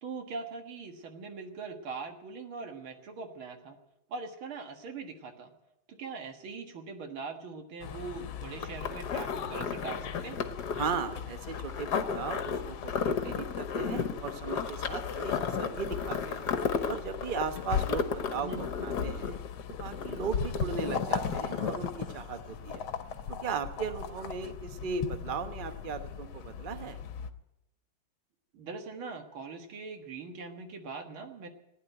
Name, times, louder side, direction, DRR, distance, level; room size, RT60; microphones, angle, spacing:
voice 1, 0.0-3.8 4.1-5.5 6.0-10.4 18.4-18.7 28.5-31.5, right 4 dB, 75° right, 5 dB, 2.4 m, -41 dB
sound 1, 7.8-27.3, left 7 dB, 75° left, 1.7 m, -39 dB
sound 2, 8.6-22.4 22.7-22.8, left 6 dB, 55° left, 1.5 m, -34 dB
voice 2, 10.7-16.5 16.9-19.4 19.8-22.9 23.3-27.0, right 5 dB, 45° right, 9 dB, 0.7 m, -37 dB
15.0 x 10.5 x 9.2 m, 0.90 s
omnidirectional pair, 2.3 m